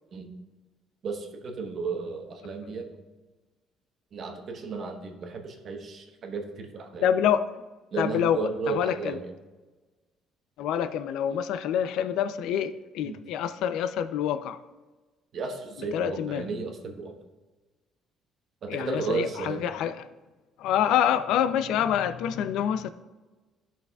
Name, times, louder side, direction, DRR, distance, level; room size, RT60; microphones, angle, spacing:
voice 1, 1.0-2.9 4.1-7.1 7.9-9.3 13.0-13.2 15.3-17.1 18.6-19.6, right 4 dB, 40° right, 3 dB, 1.1 m, -34 dB
voice 2, 7.0-7.5 8.0-9.2 10.6-14.6 15.9-16.5 18.7-20.1 20.6-22.9, left 9 dB, 75° left, 12 dB, 0.4 m, -26 dB
13.5 x 5.8 x 2.3 m, 1.2 s
cardioid pair, 155°, 0 cm